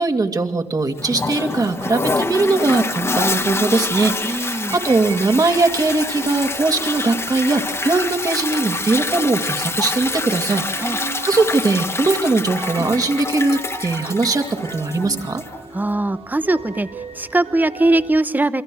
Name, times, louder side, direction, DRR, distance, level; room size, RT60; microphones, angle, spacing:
voice 1, 0.0-15.4, right 3 dB, 35° right, 5 dB, 2.4 m, -20 dB
Toilet flush, 1.0-15.6, left 3 dB, 25° left, 1.3 m, -26 dB
voice 2, 4.2-4.8 10.8-11.0 15.7-16.9 17.1-18.6, right 2 dB, 15° right, 13 dB, 1.0 m, -20 dB
sound 1, 4.7-18.1, right 5 dB, 70° right, 3.2 m, -37 dB
28.0 x 24.5 x 6.3 m, 0.86 s
wide cardioid pair, 130°, 11 cm